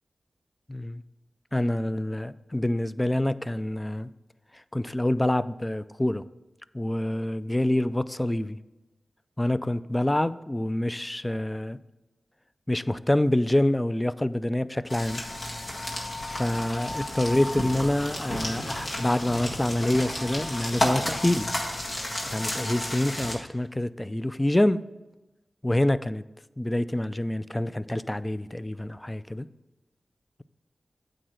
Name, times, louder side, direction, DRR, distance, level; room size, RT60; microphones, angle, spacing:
voice 1, 0.7-1.0 1.5-4.1 4.7-6.2 6.7-8.6 9.4-11.8 12.7-15.2 16.3-21.5 22.3-24.8 25.6-26.2 26.6-29.5, left 1 dB, 15° left, 15 dB, 0.3 m, -26 dB
sound 1, 14.9-23.3, left 1 dB, 65° left, 1.7 m, -32 dB
8.7 x 3.8 x 6.4 m, 1.1 s
wide cardioid pair, 65°, 0 cm